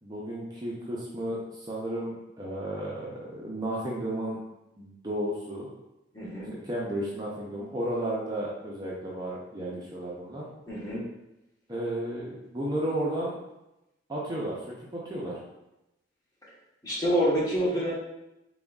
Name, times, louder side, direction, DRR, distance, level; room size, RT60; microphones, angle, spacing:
voice 1, 0.0-4.4 4.8-5.7 6.5-10.5 11.7-13.3 14.1-14.6 14.9-15.4, right 1 dB, 20° right, -5 dB, 0.6 m, -33 dB
voice 2, 6.1-6.5 10.7-11.0 16.8-17.9, equal, 20° left, -7 dB, 1.2 m, -27 dB
3.9 x 3.8 x 2.3 m, 0.92 s
head